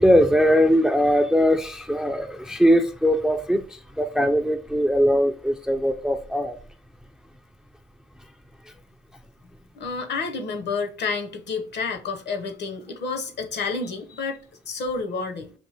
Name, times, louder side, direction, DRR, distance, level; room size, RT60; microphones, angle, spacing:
voice 1, 0.0-3.6 4.0-6.6, equal, 5° right, 0.4 m, -20 dB
voice 2, 9.7-14.4 14.7-15.5, left 4 dB, 60° left, 0.8 m, -29 dB
5.3 x 2.6 x 2.8 m
cardioid pair, 90°, 20 cm